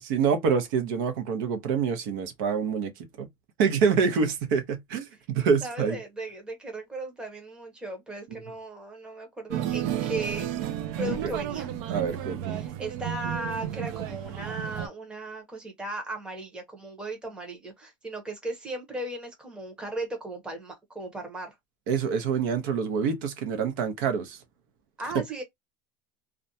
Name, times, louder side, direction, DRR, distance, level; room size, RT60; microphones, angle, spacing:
voice 1, 0.1-3.3 3.6-6.0 11.0-11.3 11.9-12.7 21.9-24.4 25.1-25.2, right 6 dB, 80° right, 0.8 m, -26 dB
voice 2, 5.6-10.5 11.0-11.7 12.5-21.5 25.0-25.4, right 2 dB, 10° right, 0.8 m, -36 dB
sound 1, 9.5-14.9, right 11 dB, 55° right, 0.4 m, -32 dB
2.4 x 2.2 x 2.6 m
cardioid pair, 170°, 11 cm